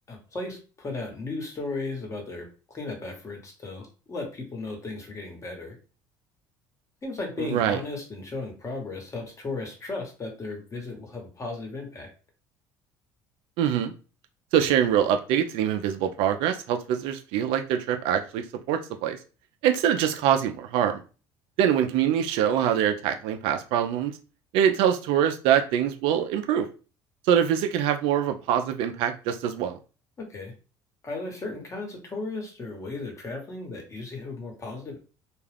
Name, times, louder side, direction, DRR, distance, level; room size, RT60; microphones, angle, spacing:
voice 1, 0.1-5.8 7.0-12.1 30.2-30.5 31.0-35.0, left 3 dB, 30° left, 2 dB, 1.1 m, -35 dB
voice 2, 7.4-7.8 13.6-13.9 14.5-19.2 19.6-21.0 21.6-24.1 24.5-26.7 27.3-29.8, right 9 dB, 75° right, 7 dB, 0.4 m, -24 dB
2.4 x 2.3 x 3.3 m, 0.35 s
supercardioid pair, 85°, 9 cm